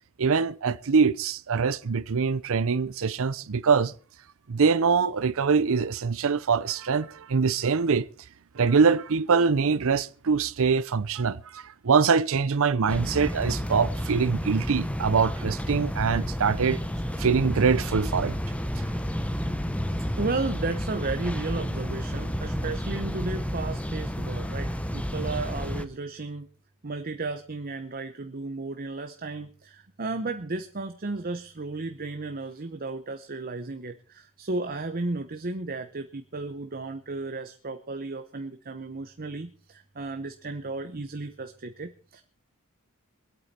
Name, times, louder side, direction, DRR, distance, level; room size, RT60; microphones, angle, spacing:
voice 1, 0.2-3.9 4.5-8.1 8.6-16.8 17.2-18.3 18.8-18.9, right 5 dB, 65° right, 0.6 m, -24 dB
sound 1, 12.9-25.9, equal, 5° left, 0.9 m, -31 dB
voice 2, 20.2-26.5 26.8-42.2, right 3 dB, 40° right, 0.9 m, -34 dB
24.0 x 8.7 x 4.3 m
head